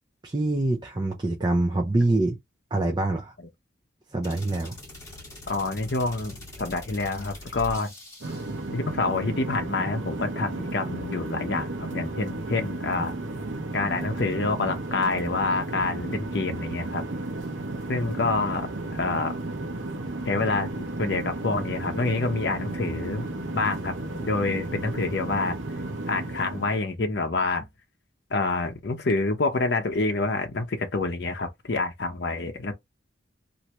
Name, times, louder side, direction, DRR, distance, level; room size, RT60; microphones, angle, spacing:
voice 1, 0.2-2.4 2.7-3.3 4.1-4.8 8.3-8.4, right 2 dB, 25° right, 0.5 m, -25 dB
sound 1, 4.2-8.7, left 1 dB, 20° left, 1.9 m, -43 dB
voice 2, 5.5-7.9 8.7-13.2 13.7-17.0 17.9-19.4 20.3-20.7 21.0-23.9 24.2-25.6 26.1-27.7 28.3-32.7, left 3 dB, 60° left, 0.7 m, -27 dB
sound 2, 8.2-26.8, right 2 dB, 80° right, 0.8 m, -33 dB
3.2 x 2.6 x 2.9 m
head